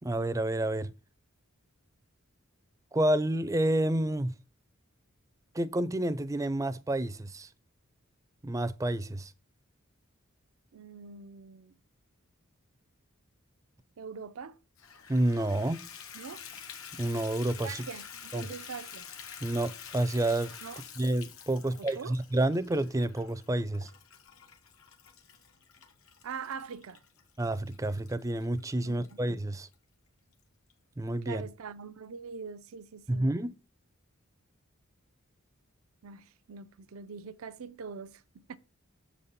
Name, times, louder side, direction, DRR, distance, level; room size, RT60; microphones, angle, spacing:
voice 1, 0.0-0.9 2.9-4.3 5.5-7.5 8.4-9.3 15.1-15.8 16.9-17.8 18.3-18.5 19.4-20.5 21.0-23.9 27.4-29.7 31.0-31.5 33.1-33.5, right 1 dB, 15° right, 0.4 m, -29 dB
voice 2, 10.7-11.8 14.0-14.6 16.1-16.4 17.6-19.1 20.6-20.8 21.6-22.2 26.2-27.0 28.8-29.0 31.3-33.3 36.0-38.2 38.5-38.6, right 5 dB, 80° right, 0.5 m, -43 dB
Water tap faucet / Bathtub (filling or washing), 14.8-29.1 29.7-29.8 30.3-30.4 30.7-30.8, left 7 dB, 80° left, 1.3 m, -48 dB
7.2 x 4.2 x 5.2 m
head